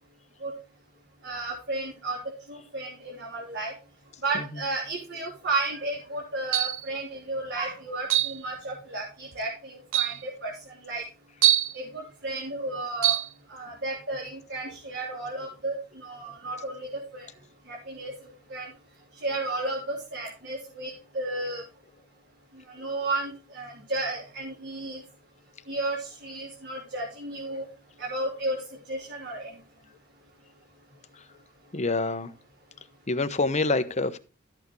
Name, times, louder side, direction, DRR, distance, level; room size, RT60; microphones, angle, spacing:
voice 1, 1.2-2.2 2.5-3.7 4.2-11.0 11.7-13.2 13.5-16.9 17.1-17.3 17.7-18.1 18.5-18.7 19.2-21.6 22.7-25.0 25.7-27.7 28.0-28.6 28.9-29.5, right 2 dB, 55° right, 3.6 m, -33 dB
sound 1, 6.5-6.9 8.1-8.4 9.3-9.4 9.9-10.2 11.4-11.8 13.0-13.3, right 12 dB, 70° right, 0.7 m, -23 dB
voice 2, 31.7-32.3 33.1-34.2, left 3 dB, 35° left, 0.9 m, -26 dB
13.5 x 8.3 x 3.1 m
head